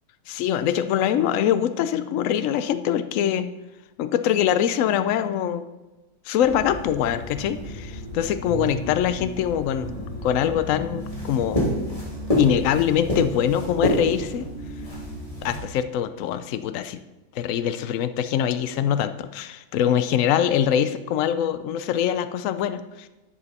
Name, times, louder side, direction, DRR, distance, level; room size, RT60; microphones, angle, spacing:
voice 1, 0.3-3.5 4.0-5.7 6.3-9.9 10.2-11.6 12.4-14.5 15.4-17.0 17.3-23.1, left 10 dB, 75° left, 11 dB, 0.7 m, -23 dB
sound 1, 6.4-15.6, equal, 20° left, 2.7 m, -29 dB
11.5 x 7.3 x 4.2 m, 1.1 s
omnidirectional pair, 1.9 m